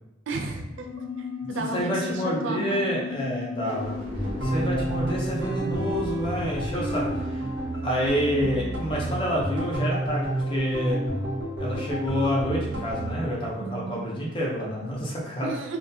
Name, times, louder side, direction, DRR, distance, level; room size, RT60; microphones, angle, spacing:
voice 1, 0.3-2.9 4.4-4.5 13.6-14.1 15.4-15.8, right 3 dB, 80° right, 2 dB, 0.3 m, -34 dB
sound 1, 0.7-6.6, left 6 dB, 80° left, 0.4 m, -37 dB
voice 2, 1.4-4.0 4.4-7.4 7.8-11.1 11.6-15.5, equal, 25° left, -3 dB, 0.5 m, -28 dB
sound 2, 3.5-8.8, equal, 30° right, 0.7 m, -38 dB
sound 3, 4.1-13.2, right 1 dB, 60° right, 0.8 m, -30 dB
2.3 x 2.2 x 2.6 m, 0.97 s
head